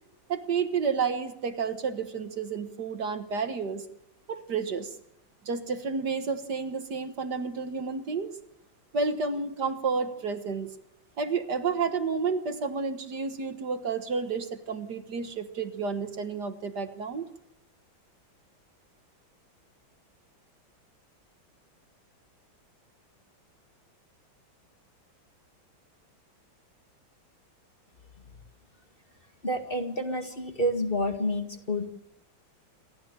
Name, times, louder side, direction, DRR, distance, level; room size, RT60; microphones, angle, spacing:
voice 1, 0.3-3.9 4.3-4.9 5.5-8.3 8.9-10.7 11.2-17.3, right 5 dB, 60° right, 9 dB, 1.9 m, -30 dB
voice 2, 29.4-31.9, equal, 30° left, 6 dB, 2.1 m, -29 dB
28.0 x 13.5 x 8.9 m, 0.79 s
omnidirectional pair, 2.1 m